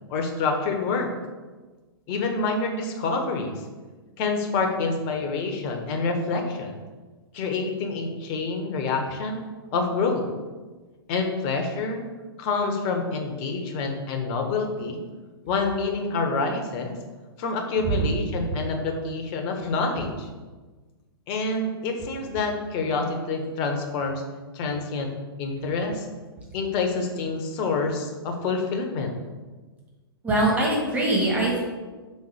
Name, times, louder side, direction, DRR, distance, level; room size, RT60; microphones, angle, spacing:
voice 1, 0.1-1.1 2.1-3.6 4.2-6.8 7.3-10.2 11.1-12.0 12.4-15.0 15.4-16.9 17.4-20.3 21.3-24.2 24.5-25.1 25.4-26.1 26.5-29.2, left 3 dB, 35° left, 4 dB, 1.0 m, -27 dB
voice 2, 30.2-31.6, right 1 dB, 10° right, -4 dB, 1.7 m, -22 dB
5.5 x 4.0 x 4.9 m, 1.3 s
figure-of-eight pair, 110°, 13 cm